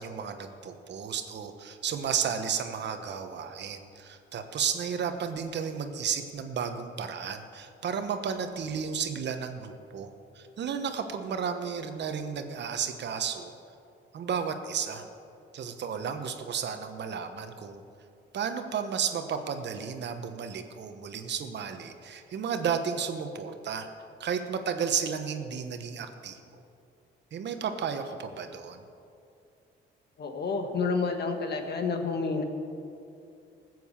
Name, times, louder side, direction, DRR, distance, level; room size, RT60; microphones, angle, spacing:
voice 1, 0.0-10.1 10.3-13.5 14.1-15.0 15.5-17.8 18.3-23.9 24.2-26.6 27.3-28.8, right 7 dB, 60° right, 7 dB, 1.1 m, -33 dB
voice 2, 30.2-32.4, left 4 dB, 55° left, 5 dB, 1.6 m, -29 dB
15.0 x 7.8 x 7.3 m, 2.6 s
cardioid pair, 90°, 20 cm